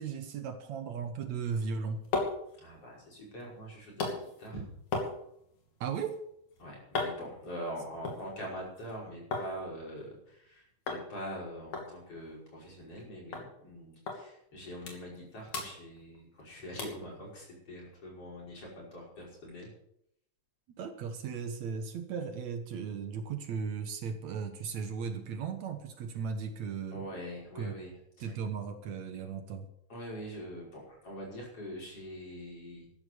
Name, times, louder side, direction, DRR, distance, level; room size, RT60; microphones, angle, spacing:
voice 1, 0.0-2.0 5.8-6.2 20.8-27.1 27.6-27.7 28.2-29.7, right 6 dB, 65° right, 7 dB, 2.4 m, -36 dB
sound 1, 1.6-9.5 9.8-10.5 10.9-11.1 11.3-11.4 11.7-13.0 13.3-13.5 14.1-14.2 14.6-15.2 15.5-16.4 16.8-17.1 17.6-17.7, left 3 dB, 65° left, 4.1 m, -38 dB
voice 2, 2.6-4.1 4.4-4.6 6.6-19.7 26.9-27.9 28.2-28.3 29.9-32.8, equal, 45° left, -3 dB, 6.5 m, -43 dB
13.5 x 11.0 x 6.9 m, 0.73 s
omnidirectional pair, 3.5 m